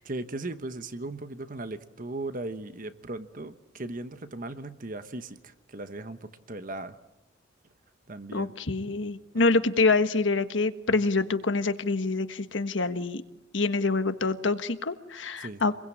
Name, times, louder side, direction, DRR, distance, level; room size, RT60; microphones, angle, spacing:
voice 1, 0.0-7.0 8.1-8.5 9.3-9.4 15.4-15.6, right 2 dB, 45° right, 10 dB, 1.2 m, -37 dB
voice 2, 8.3-13.2 13.5-15.7, left 3 dB, 70° left, 10 dB, 1.4 m, -26 dB
28.0 x 22.0 x 8.8 m, 0.88 s
head